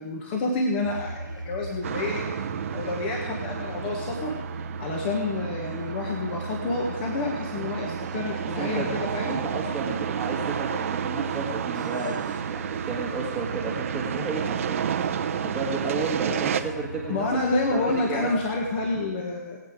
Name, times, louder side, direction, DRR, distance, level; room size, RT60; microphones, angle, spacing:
voice 1, 0.0-4.3 4.8-9.4 17.1-19.6, left 2 dB, 35° left, 0 dB, 1.8 m, -29 dB
sound 1, 0.8-19.1, right 3 dB, 85° right, 0.9 m, -38 dB
sound 2, 1.8-16.6, right 8 dB, 45° right, 0.9 m, -31 dB
voice 2, 8.6-9.0 9.3-17.3 17.7-18.3, right 3 dB, 5° right, -6 dB, 1.6 m, -32 dB
20.5 x 8.4 x 4.9 m, 1.1 s
hypercardioid pair, 150°, 10 cm